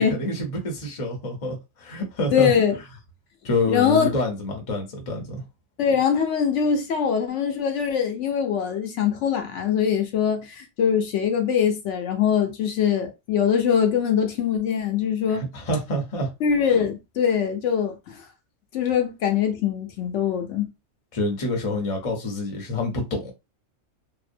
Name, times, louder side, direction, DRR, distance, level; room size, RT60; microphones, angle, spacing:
voice 1, 0.0-2.5 3.4-5.4 15.3-16.3 21.1-23.3, left 1 dB, 35° left, 0.6 m, -27 dB
voice 2, 2.3-2.8 3.7-4.2 5.8-15.4 16.4-18.2 18.7-20.7, left 7 dB, 75° left, 0.9 m, -22 dB
2.6 x 2.1 x 2.5 m
omnidirectional pair, 1.3 m